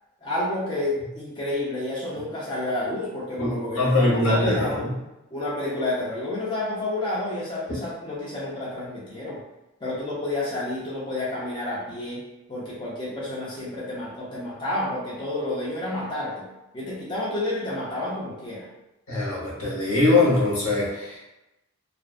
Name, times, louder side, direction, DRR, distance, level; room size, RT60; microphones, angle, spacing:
voice 1, 0.2-4.8 5.3-9.4 9.8-12.2 12.5-16.5 16.7-18.7, left 1 dB, 20° left, -7 dB, 0.4 m, -30 dB
voice 2, 3.4-4.9 19.1-21.2, left 2 dB, 85° left, -6 dB, 1.0 m, -22 dB
2.4 x 2.2 x 2.4 m, 0.96 s
head